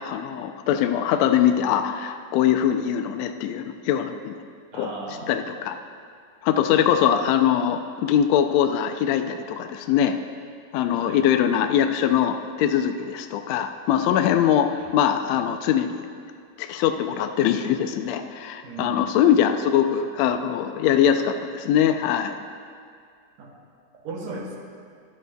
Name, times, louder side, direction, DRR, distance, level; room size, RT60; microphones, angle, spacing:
voice 1, 0.0-4.3 4.8-4.9 5.3-5.8 6.4-10.1 10.7-16.1 16.6-22.4, left 9 dB, 80° left, 6 dB, 1.5 m, -22 dB
voice 2, 4.7-5.4 6.7-7.1 10.9-11.3 14.7-14.9 18.6-19.5 23.4-23.5 24.0-24.6, right 3 dB, 80° right, 0 dB, 3.1 m, -37 dB
24.0 x 9.6 x 2.3 m, 2.2 s
omnidirectional pair, 3.7 m